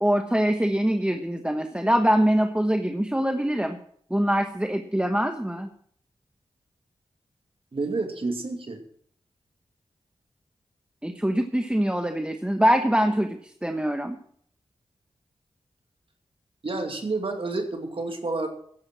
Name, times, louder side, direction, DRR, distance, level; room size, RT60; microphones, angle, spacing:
voice 1, 0.0-3.8 4.1-5.7 11.0-14.2, equal, 10° right, 6 dB, 1.2 m, -24 dB
voice 2, 7.7-8.8 16.6-18.5, right 3 dB, 55° right, 4 dB, 2.5 m, -29 dB
13.5 x 10.5 x 6.1 m, 0.62 s
cardioid pair, 45°, 11 cm